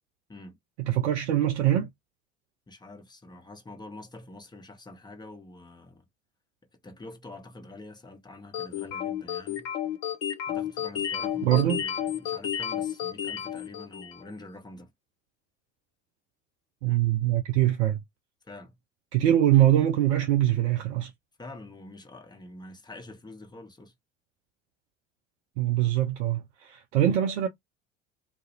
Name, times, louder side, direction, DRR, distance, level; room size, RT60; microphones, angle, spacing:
voice 1, 0.8-1.9 11.4-11.8 16.8-18.0 19.1-21.1 25.6-27.5, right 12 dB, 75° right, 0.5 m, -23 dB
voice 2, 2.7-6.1 6.7-9.7 10.5-14.9 18.4-18.8 21.4-23.9, left 2 dB, 10° left, 0.8 m, -46 dB
sound 1, 8.5-14.3, left 10 dB, 60° left, 0.8 m, -31 dB
2.3 x 2.1 x 2.8 m
figure-of-eight pair, 55°, 35 cm